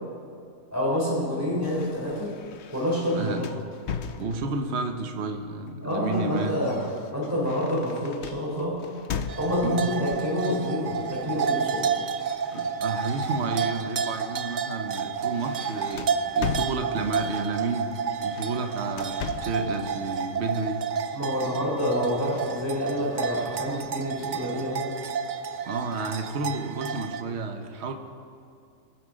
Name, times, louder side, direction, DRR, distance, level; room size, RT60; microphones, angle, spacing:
voice 1, 0.7-2.3 2.7-3.3 5.8-6.8 7.1-8.8 9.4-11.9 21.1-24.9, left 1 dB, 10° right, -6 dB, 4.2 m, -27 dB
sound 1, 1.6-4.7 5.7-9.9 10.9-11.3 11.6-13.9 14.3-14.5 14.9-17.3 18.2-19.7, left 6 dB, 60° left, 0.8 m, -38 dB
voice 2, 3.1-3.5 4.2-6.7 9.6-9.9 12.5-16.1 16.3-17.9 18.2-20.8 21.4-21.7 25.7-27.9, right 3 dB, 50° right, 6 dB, 1.2 m, -31 dB
sound 2, 9.3-27.2, right 6 dB, 75° right, 0.4 m, -30 dB
23.0 x 7.6 x 5.2 m, 2.5 s
omnidirectional pair, 1.5 m